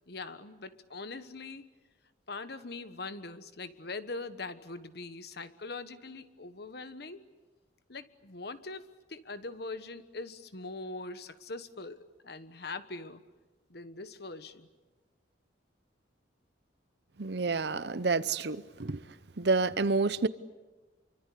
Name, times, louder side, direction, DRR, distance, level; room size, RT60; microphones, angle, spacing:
voice 1, 0.1-1.7 2.3-7.2 7.9-13.2 13.7-14.7, left 3 dB, 55° left, 1.3 m, -42 dB
voice 2, 17.2-19.0 19.4-20.3, right 3 dB, 60° right, 0.8 m, -29 dB
27.5 x 25.0 x 8.4 m
head